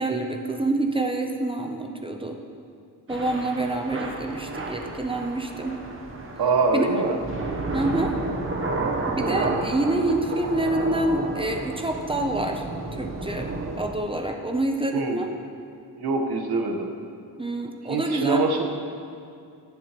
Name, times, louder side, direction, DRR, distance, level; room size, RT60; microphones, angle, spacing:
voice 1, 0.0-2.4 3.1-5.8 6.7-6.9 7.7-8.1 9.1-12.6 12.9-13.5 13.8-15.3 17.4-18.4, right 2 dB, 15° right, 3 dB, 0.6 m, -27 dB
Thunder / Rain, 3.1-13.9, right 2 dB, 30° right, 0.9 m, -31 dB
voice 2, 6.4-7.2 14.9-15.2 16.0-16.9 17.9-18.6, right 3 dB, 65° right, 2 dB, 1.2 m, -24 dB
18.0 x 7.4 x 3.0 m, 2.5 s
wide cardioid pair, 155°, 42 cm